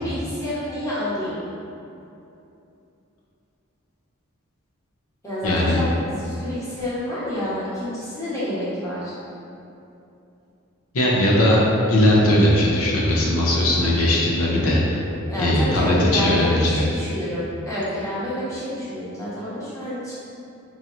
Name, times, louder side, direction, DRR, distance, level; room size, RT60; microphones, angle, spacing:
voice 1, 0.0-1.4 5.2-9.1 15.3-20.1, left 1 dB, 15° left, -10 dB, 1.0 m, -28 dB
voice 2, 5.4-5.8 10.9-11.6 11.9-15.0 15.4-16.8, left 1 dB, 80° left, -4 dB, 0.7 m, -19 dB
5.5 x 2.9 x 2.5 m, 2.8 s
head